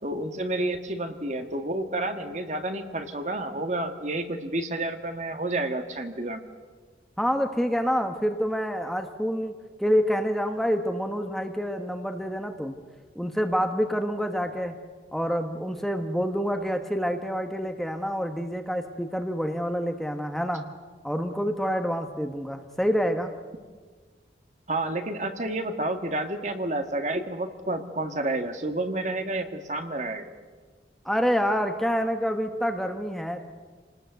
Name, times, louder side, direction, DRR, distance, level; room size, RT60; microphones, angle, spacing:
voice 1, 0.0-6.4 24.7-30.3, right 2 dB, 40° right, 7 dB, 1.8 m, -30 dB
voice 2, 7.2-9.5 9.8-12.8 13.1-14.8 15.1-20.7 21.0-23.3 31.0-33.5, equal, ahead, 5 dB, 1.2 m, -27 dB
28.0 x 19.5 x 8.2 m, 1.5 s
head